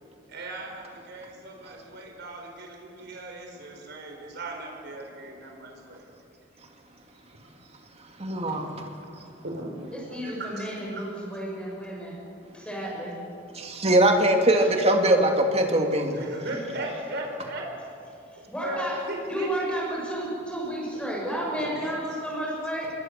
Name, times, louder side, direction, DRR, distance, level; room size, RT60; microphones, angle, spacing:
voice 1, 0.3-6.0 8.3-8.6 9.4-11.1 16.1-17.6 18.6-19.5 21.6-22.2, right 1 dB, 60° right, 1 dB, 4.7 m, -37 dB
voice 2, 8.2-8.8 13.5-16.2, right 1 dB, 35° right, 3 dB, 2.6 m, -21 dB
voice 3, 9.9-12.1 12.5-13.1 14.6-14.7 18.5-19.0 19.3-22.9, right 1 dB, 5° left, -4 dB, 6.2 m, -32 dB
26.5 x 22.0 x 6.8 m, 2.6 s
head